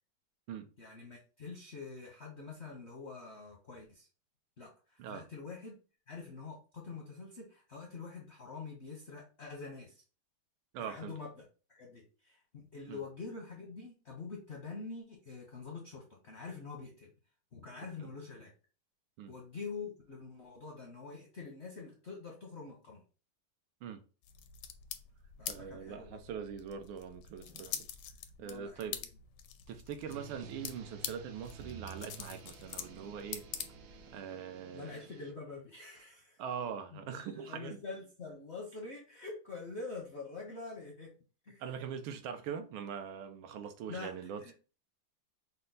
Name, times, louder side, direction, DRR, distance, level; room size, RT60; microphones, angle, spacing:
voice 1, 0.8-4.1 4.6-5.7 6.1-10.0 10.8-11.3 11.7-17.1 17.5-18.5 19.3-23.0 25.4-26.2 28.4-29.0 34.7-36.4 36.9-41.1 41.4-41.6 43.9-44.5, left 4 dB, 60° left, 0.7 m, -46 dB
voice 2, 10.7-11.1 12.9-13.0 18.0-18.1 19.2-19.3 23.8-24.0 25.5-27.9 28.4-29.0 29.7-33.4 34.1-34.9 36.4-37.8 41.6-44.5, right 7 dB, 85° right, 1.4 m, -42 dB
sound 1, 24.2-34.2, left 9 dB, 75° left, 1.0 m, -46 dB
sound 2, 30.0-35.3, right 5 dB, 70° right, 1.1 m, -51 dB
5.5 x 2.0 x 3.9 m
omnidirectional pair, 2.3 m